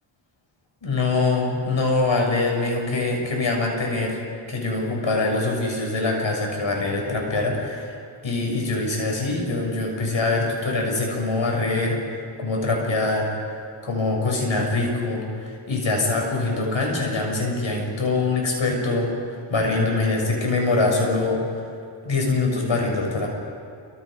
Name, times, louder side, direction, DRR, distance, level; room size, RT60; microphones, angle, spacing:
voice 1, 0.8-4.2 4.5-7.9 8.2-12.0 12.4-13.3 13.8-19.1 19.5-21.4 22.0-23.3, left 3 dB, 75° left, 0 dB, 6.7 m, -23 dB
29.5 x 24.5 x 5.1 m, 2.5 s
wide cardioid pair, 70°, 47 cm